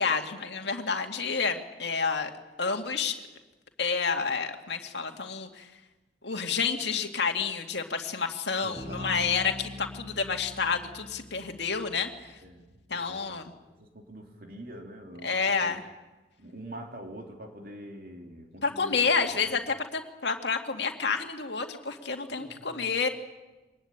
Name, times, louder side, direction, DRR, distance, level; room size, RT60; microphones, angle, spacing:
voice 1, 0.0-2.3 2.6-3.1 3.8-5.7 6.2-12.4 12.9-13.5 15.2-15.8 18.6-23.1, left 5 dB, 65° left, 4 dB, 2.3 m, -29 dB
voice 2, 8.6-9.3 12.4-13.4 13.8-15.8 16.4-19.0 19.3-19.6 22.3-22.9, right 1 dB, 50° right, 3 dB, 3.3 m, -45 dB
Bass guitar, 8.8-12.5, left 1 dB, ahead, 4.4 m, -43 dB
24.0 x 19.5 x 9.0 m, 1.1 s
head